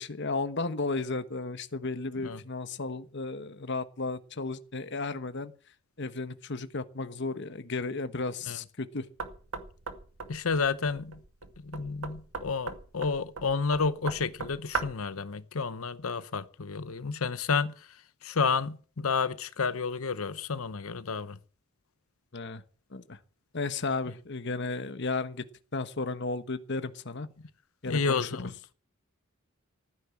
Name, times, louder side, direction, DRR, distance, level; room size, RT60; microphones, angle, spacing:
voice 1, 0.0-5.5 6.0-9.1 22.3-22.6 22.9-23.2 23.5-25.4 25.7-27.3 27.8-28.3, left 3 dB, 55° left, 1.2 m, -34 dB
Knock, 9.2-15.1, right 4 dB, 80° right, 2.0 m, -39 dB
voice 2, 10.3-11.2 11.6-17.9 18.2-21.4 27.8-28.5, left 5 dB, 80° left, 0.8 m, -30 dB
15.0 x 9.6 x 7.3 m
head